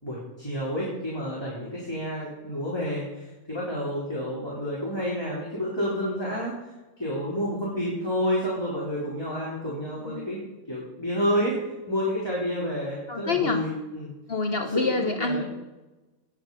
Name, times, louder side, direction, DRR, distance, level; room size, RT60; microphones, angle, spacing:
voice 1, 0.0-6.5 7.0-10.4 10.7-11.5 11.9-14.1 14.7-15.5, equal, 20° left, -6 dB, 3.5 m, -29 dB
voice 2, 13.1-13.6 14.3-15.5, left 3 dB, 50° left, 5 dB, 1.1 m, -27 dB
19.5 x 8.1 x 5.5 m, 1.1 s
omnidirectional pair, 1.3 m